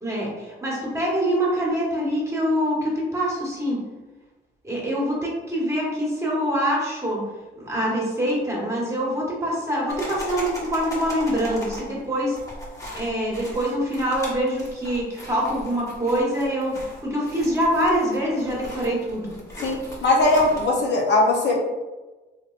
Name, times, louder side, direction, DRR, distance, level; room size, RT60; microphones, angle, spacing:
voice 1, 0.0-3.8 4.6-7.2 7.6-12.4 12.9-19.3, equal, 15° right, -4 dB, 1.2 m, -25 dB
sound 1, 9.9-20.8, left 1 dB, 15° left, 1.0 m, -38 dB
voice 2, 19.6-21.6, left 2 dB, 60° left, -1 dB, 0.7 m, -20 dB
3.2 x 2.9 x 2.4 m, 1.2 s
cardioid pair, 90°, 20 cm